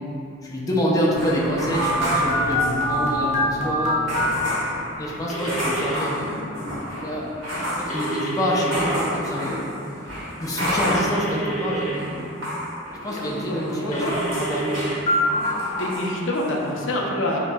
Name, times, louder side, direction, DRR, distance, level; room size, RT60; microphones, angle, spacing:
voice 1, 0.4-4.2 5.0-6.5 7.0-7.3 7.7-9.7 10.0-12.4 13.0-14.9, equal, 20° left, -5 dB, 0.5 m, -27 dB
sound 1, 1.1-9.3, right 1 dB, 30° right, 0.5 m, -38 dB
sound 2, 1.2-3.2 3.5-3.6 4.1-11.5 11.7-16.1 16.3-16.7, equal, 70° right, 1.5 m, -30 dB
Telephone, 1.7-4.3 5.3-5.9 7.9-8.9 10.9-11.9 13.9-15.2, equal, 35° left, 0.9 m, -26 dB
voice 2, 13.0-14.2 15.5-17.4, left 1 dB, 70° left, -2 dB, 0.7 m, -27 dB
8.0 x 2.9 x 2.3 m, 2.5 s
head